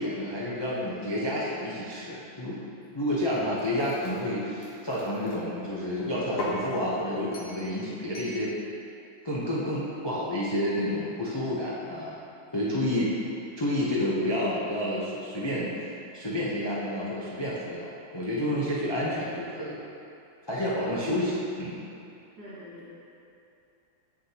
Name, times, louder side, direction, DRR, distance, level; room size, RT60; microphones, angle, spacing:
voice 1, 0.0-2.6 2.9-8.5 9.2-12.2 12.5-13.1 13.6-15.7 16.1-19.8 20.5-21.8, left 1 dB, 30° left, -7 dB, 0.4 m, -29 dB
Pouring water into a cup, 3.1-5.4 6.0-6.7 7.3-7.7 8.1-8.4, left 1 dB, 80° left, 1.5 m, -39 dB
voice 2, 22.4-22.9, equal, 75° right, -9 dB, 2.3 m, -44 dB
7.5 x 6.1 x 2.8 m, 2.6 s
omnidirectional pair, 1.7 m